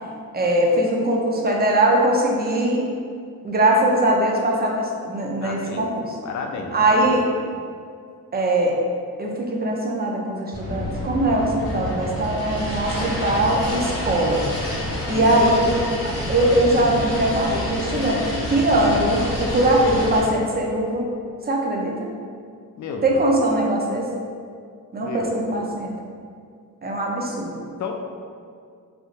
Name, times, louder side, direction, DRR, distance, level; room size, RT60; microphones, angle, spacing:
voice 1, 0.3-2.9 3.4-6.2 6.7-7.3 8.3-8.8 9.2-14.5 15.1-15.7 16.3-18.2 18.5-21.1 21.5-22.1 23.0-24.1 24.9-25.9 26.8-27.6, right 1 dB, 25° right, -1 dB, 0.6 m, -21 dB
voice 2, 5.4-5.9 6.2-7.2 14.9-15.4 22.8-23.2 25.0-25.6 27.8-27.9, left 4 dB, 55° left, 2 dB, 0.5 m, -32 dB
sound 1, 10.5-20.2, left 1 dB, 85° left, 1.5 m, -28 dB
3.4 x 2.7 x 2.4 m, 2.2 s
cardioid pair, 65°, 35 cm